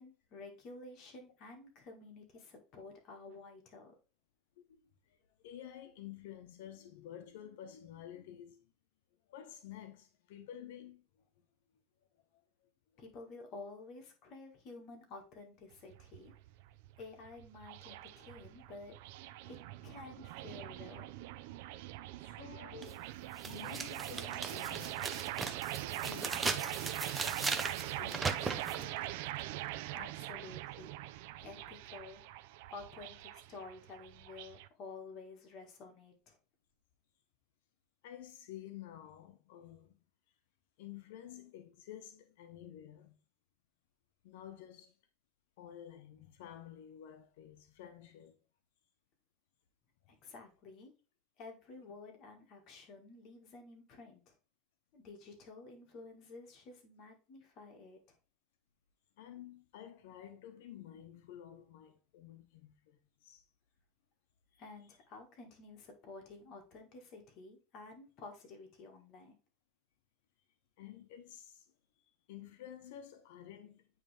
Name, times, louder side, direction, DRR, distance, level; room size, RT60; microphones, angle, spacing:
voice 1, 0.0-3.9 13.0-16.3 17.0-19.0 19.5-19.6 19.8-21.1 29.9-30.9 31.4-32.2 32.7-36.4 50.2-50.9 51.4-54.4 54.9-58.2 64.6-69.3, left 3 dB, 50° left, 1.7 m, -51 dB
voice 2, 5.1-8.7 9.3-11.0 12.3-12.4 22.2-25.1 26.1-26.8 27.8-29.4 29.9-30.0 31.4-31.6 38.0-40.0 40.8-43.2 44.2-45.0 45.6-48.4 59.2-63.4 64.5-64.6 70.8-71.7 72.3-73.9, left 10 dB, 85° left, 0.8 m, -51 dB
sound 1, 15.7-34.7, right 15 dB, 75° right, 0.4 m, -43 dB
sound 2, 22.8-22.9 23.4-28.8, right 4 dB, 15° right, 0.6 m, -38 dB
8.9 x 3.2 x 3.3 m
supercardioid pair, 140°, 0 cm